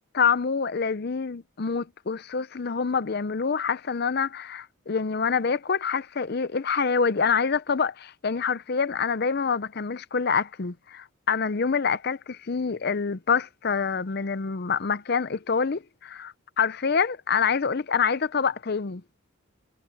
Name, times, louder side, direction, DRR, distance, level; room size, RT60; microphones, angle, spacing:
voice 1, 0.1-19.0, left 5 dB, 50° left, 0.6 m, -26 dB
head